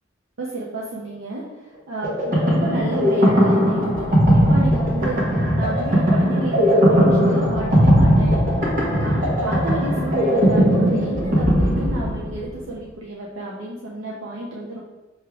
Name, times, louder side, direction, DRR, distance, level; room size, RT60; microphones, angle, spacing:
voice 1, 0.4-5.2 5.5-14.8, right 2 dB, 75° right, -4 dB, 0.7 m, -31 dB
sound 1, 2.0-12.6, equal, 45° right, 1.1 m, -18 dB
6.3 x 3.2 x 2.4 m, 1.1 s
head